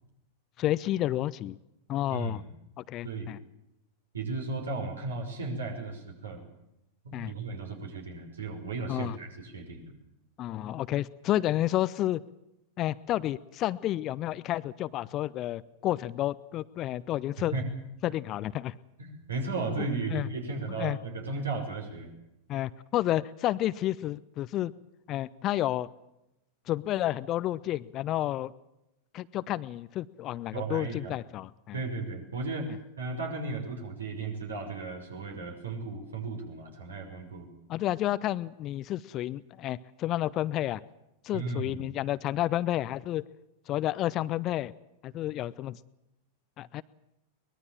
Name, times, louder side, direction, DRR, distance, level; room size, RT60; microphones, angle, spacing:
voice 1, 0.6-1.6 1.9-2.4 2.9-3.4 7.1-7.3 8.9-9.2 10.4-12.2 12.8-17.5 18.0-18.7 19.8-20.3 20.8-21.0 22.5-24.7 25.1-25.9 26.7-28.5 29.1-31.8 37.7-40.8 41.2-43.2 43.7-44.7 45.0-45.8 46.6-46.8, left 14 dB, 35° left, 17 dB, 0.8 m, -30 dB
voice 2, 2.1-2.5 3.0-3.3 4.1-6.5 7.0-9.9 17.4-17.7 19.0-22.1 30.5-31.2 31.7-32.7 33.0-37.5 41.3-41.9, right 3 dB, 70° right, 4 dB, 5.8 m, -35 dB
23.5 x 21.0 x 7.5 m, 0.86 s
figure-of-eight pair, 90°, 0 cm